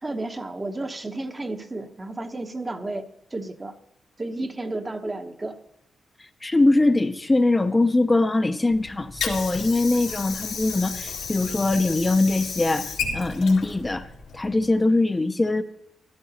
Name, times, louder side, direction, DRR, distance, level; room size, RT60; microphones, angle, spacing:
voice 1, 0.0-3.7 4.2-5.6, right 2 dB, 25° right, 7 dB, 0.9 m, -32 dB
voice 2, 6.4-14.0 14.3-15.6, left 2 dB, 25° left, 8 dB, 0.6 m, -22 dB
Water / Sink (filling or washing), 8.7-14.7, left 5 dB, 85° left, 1.9 m, -33 dB
13.0 x 12.5 x 2.8 m, 0.81 s
cardioid pair, 65°, 0 cm